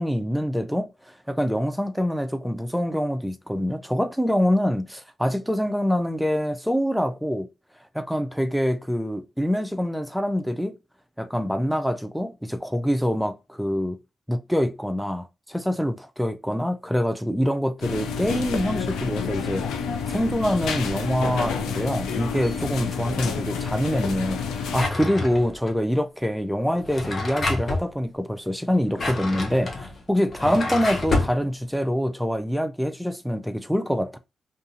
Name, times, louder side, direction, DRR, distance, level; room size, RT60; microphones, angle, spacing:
voice 1, 0.0-7.5 7.9-10.8 11.2-14.0 14.3-19.7 20.1-34.2, equal, ahead, 0.5 m, -25 dB
sound 1, 17.8-24.9, left 6 dB, 85° left, 0.4 m, -29 dB
Drawer open or close, 24.7-25.7 26.7-27.9 28.7-31.4, left 2 dB, 50° left, 0.8 m, -28 dB
2.6 x 2.4 x 2.5 m
supercardioid pair, 45°, 0 cm